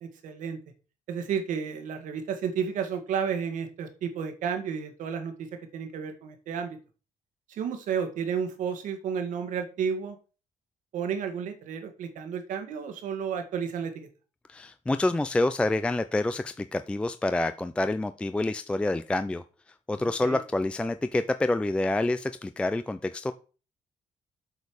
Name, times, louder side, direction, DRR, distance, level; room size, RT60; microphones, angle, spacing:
voice 1, 0.0-0.6 1.1-6.8 7.5-10.2 10.9-14.1 20.0-20.4, right 7 dB, 75° right, 7 dB, 1.9 m, -32 dB
voice 2, 14.5-19.4 19.9-23.3, left 2 dB, 10° left, 10 dB, 0.3 m, -27 dB
8.1 x 5.4 x 6.3 m, 0.36 s
cardioid pair, 160°, 13 cm